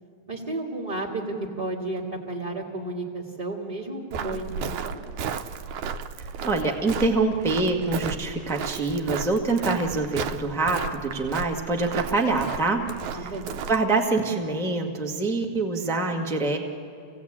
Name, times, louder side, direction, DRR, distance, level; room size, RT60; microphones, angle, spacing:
voice 1, 0.3-1.2 1.6-5.0 13.1-13.5, right 2 dB, 15° right, -6 dB, 1.5 m, -32 dB
Walk footsteps, 4.1-13.9, right 6 dB, 85° right, 2.2 m, -34 dB
voice 2, 6.4-12.9 13.2-13.3 13.7-16.6, right 3 dB, 5° left, 1 dB, 0.4 m, -25 dB
26.5 x 17.0 x 8.7 m, 2.4 s
omnidirectional pair, 3.4 m